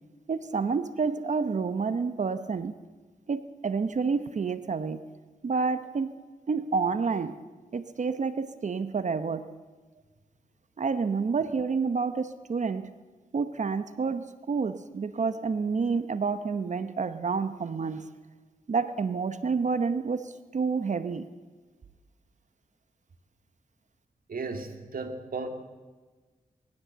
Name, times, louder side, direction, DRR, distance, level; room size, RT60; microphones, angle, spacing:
voice 1, 0.3-2.7 3.3-5.0 5.4-6.1 6.5-7.4 7.7-9.4 10.8-12.9 13.3-18.1 18.7-21.3, right 5 dB, 55° right, 12 dB, 0.9 m, -29 dB
voice 2, 24.3-25.5, right 4 dB, 70° right, 5 dB, 2.4 m, -35 dB
21.0 x 16.0 x 8.0 m, 1.3 s
wide cardioid pair, 90°, 15 cm